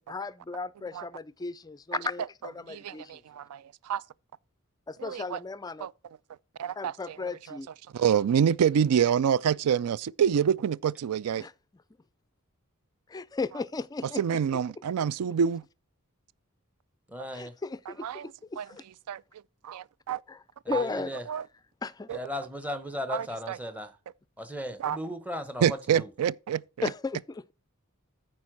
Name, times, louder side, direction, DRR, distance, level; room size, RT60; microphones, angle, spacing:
voice 1, 0.1-3.2 4.9-5.9 6.8-7.7 11.4-11.5 13.1-14.4 17.3-18.8 20.3-20.4 20.7-21.2 21.8-22.1 26.8-27.5, left 4 dB, 15° left, 0.3 m, -35 dB
voice 2, 2.7-4.0 5.0-5.4 5.8-5.9 6.6-7.2 7.5-7.6 7.9-11.4 14.2-15.6 18.0-18.3 18.6-18.7 19.1-19.2 19.6-20.2 20.7-20.8 21.3-21.4 22.1-22.2 23.1-23.6 24.8-25.0 25.6-26.9, right 8 dB, 85° right, 0.4 m, -27 dB
voice 3, 17.1-17.5 20.6-21.2 22.1-24.0 24.4-26.1, equal, 5° right, 0.9 m, -36 dB
9.5 x 4.6 x 6.0 m
head